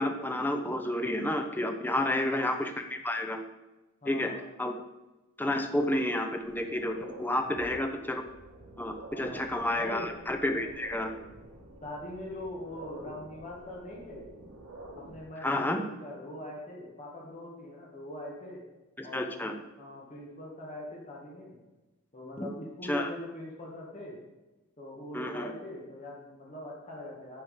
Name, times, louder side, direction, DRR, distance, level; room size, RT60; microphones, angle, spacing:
voice 1, 0.0-3.4 4.1-4.3 4.6-4.7 5.4-8.2 8.8-11.1 15.4-15.8 19.0-19.5 22.4-22.5 22.9-23.1 25.1-25.5, left 1 dB, 10° left, 5 dB, 0.7 m, -30 dB
voice 2, 1.9-2.5 4.0-4.4 7.3-7.7 9.1-9.4 9.7-10.1 11.8-14.3 14.9-18.6 19.0-19.5 19.8-21.6 22.1-24.2 24.8-27.4, left 1 dB, 35° left, -4 dB, 1.9 m, -42 dB
sound 1, 6.4-15.2, right 1 dB, 75° right, 1.9 m, -49 dB
9.7 x 6.4 x 5.0 m, 1.1 s
head